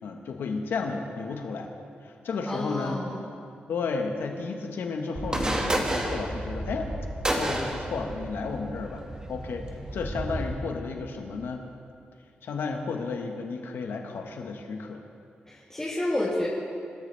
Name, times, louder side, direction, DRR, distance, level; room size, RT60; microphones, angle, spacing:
voice 1, 0.0-1.7 2.0-3.0 3.7-6.9 7.3-9.0 9.3-9.7 9.9-11.6 12.4-15.0, left 4 dB, 85° left, 3 dB, 1.4 m, -32 dB
voice 2, 2.5-3.2 15.5-16.5, left 1 dB, 15° left, -8 dB, 2.9 m, -29 dB
sound 1, 5.1-10.5, right 1 dB, 20° right, 1.8 m, -31 dB
26.5 x 13.0 x 3.4 m, 2.5 s
cardioid pair, 90°, 4 cm